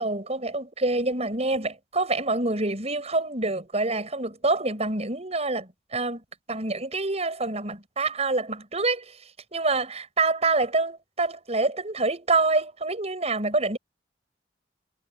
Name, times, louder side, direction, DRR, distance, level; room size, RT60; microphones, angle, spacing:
voice 1, 0.0-6.2 6.5-9.2 9.5-13.8, right 3 dB, 35° right, 7.9 m, -26 dB
head